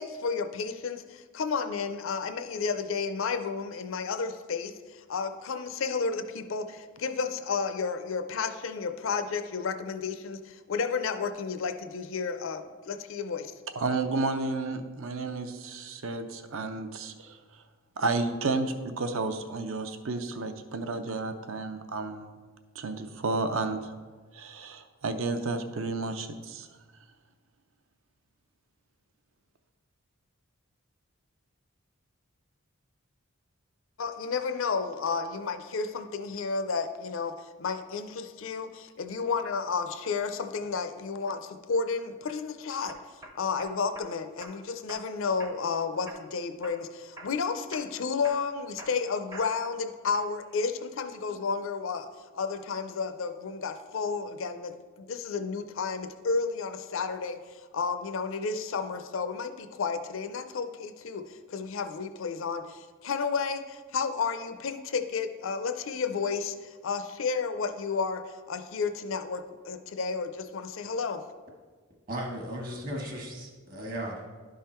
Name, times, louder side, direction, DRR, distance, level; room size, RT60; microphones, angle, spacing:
voice 1, 0.0-13.5 34.0-43.0 43.3-52.1 52.3-71.2, left 5 dB, 60° left, 9 dB, 0.5 m, -32 dB
voice 2, 13.7-17.6 18.0-22.3 22.7-23.9 24.3-26.7, right 3 dB, 65° right, 8 dB, 0.6 m, -32 dB
sound 1, 42.0-42.3 42.9-44.1 44.4-45.0 45.4-45.8 46.1-46.8 47.2-47.4 47.7-49.7 50.1-50.6, right 1 dB, 15° right, 0.5 m, -46 dB
voice 3, 72.1-74.3, right 1 dB, 40° right, 1 dB, 1.2 m, -36 dB
11.0 x 3.7 x 4.3 m, 1.5 s
head